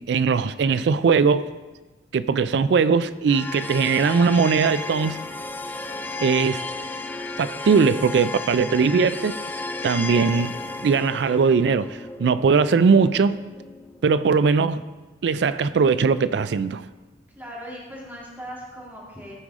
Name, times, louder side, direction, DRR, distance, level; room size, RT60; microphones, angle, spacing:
voice 1, 0.0-1.5 2.1-5.2 6.2-6.6 7.4-9.3 9.8-10.5 10.8-13.4 14.0-14.8 15.2-16.8, right 5 dB, 70° right, 0.3 m, -20 dB
sound 1, 3.3-14.3, left 2 dB, 10° left, 0.3 m, -34 dB
voice 2, 17.4-19.3, equal, 10° right, 1.8 m, -38 dB
14.0 x 4.8 x 3.7 m
head